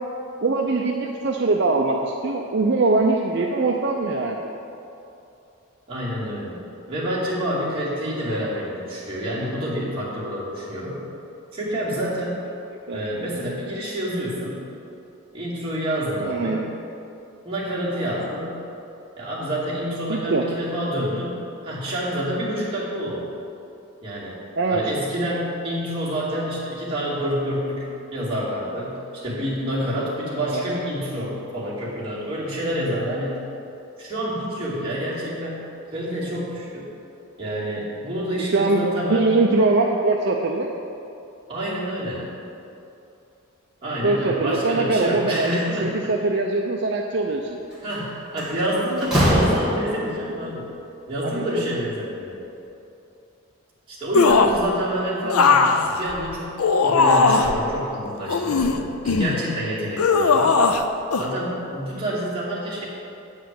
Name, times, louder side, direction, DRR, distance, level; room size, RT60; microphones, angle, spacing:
voice 1, 0.4-4.4 12.9-13.0 16.2-16.7 20.1-20.4 24.6-24.8 30.5-30.6 38.5-40.7 44.0-47.6 51.2-51.5 55.2-55.3, right 3 dB, 50° right, 0 dB, 0.5 m, -22 dB
voice 2, 5.9-6.6 6.9-11.0 11.5-12.4 12.9-14.6 15.3-16.7 17.4-18.6 19.2-21.4 21.6-23.3 24.0-24.4 24.7-33.4 34.0-35.6 35.9-36.9 37.4-39.3 41.5-42.3 43.8-46.1 47.8-50.7 51.1-52.4 53.9-55.7 56.0-56.5 56.8-60.6 61.1-62.8, equal, 25° right, -8 dB, 2.4 m, -28 dB
Slam, 47.7-47.9 48.4-50.2, equal, 5° right, 2.1 m, -22 dB
sound 1, 54.1-54.6 55.3-57.6 58.3-59.4 60.0-60.8 61.1-61.3, left 4 dB, 85° left, 0.5 m, -18 dB
9.1 x 4.9 x 7.5 m, 2.8 s
head